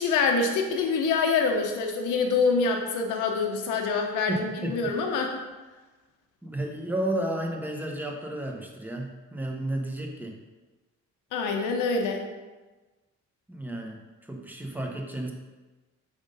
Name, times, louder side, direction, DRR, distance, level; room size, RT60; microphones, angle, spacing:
voice 1, 0.0-5.3 11.3-12.2, left 4 dB, 90° left, 3 dB, 0.9 m, -25 dB
voice 2, 4.3-4.8 6.4-10.3 13.5-14.0 14.3-15.3, right 1 dB, 5° right, 1 dB, 1.0 m, -32 dB
5.2 x 3.6 x 5.3 m, 1.2 s
cardioid pair, 90°, 30 cm